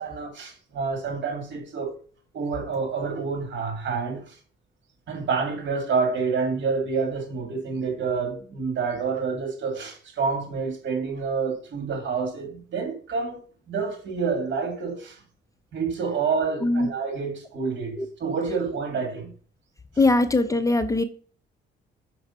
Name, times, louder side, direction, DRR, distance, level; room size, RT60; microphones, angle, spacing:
voice 1, 0.0-2.0 2.3-4.4 5.1-13.4 13.7-15.2 15.7-19.3, right 5 dB, 65° right, 2.0 m, -28 dB
voice 2, 20.0-21.0, left 2 dB, 15° left, 0.6 m, -21 dB
6.0 x 4.6 x 4.2 m
cardioid pair, 90°, 20 cm